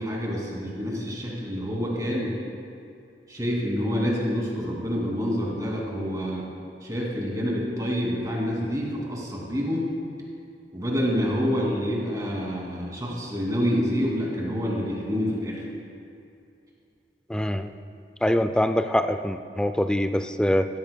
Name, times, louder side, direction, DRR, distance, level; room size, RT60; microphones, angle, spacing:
voice 1, 0.0-2.4 3.3-6.4 6.8-9.9 10.7-15.6, equal, 20° right, -3 dB, 2.5 m, -27 dB
voice 2, 17.3-17.7 18.2-20.7, left 1 dB, 5° left, 9 dB, 0.3 m, -24 dB
15.5 x 13.5 x 2.2 m, 2.5 s
head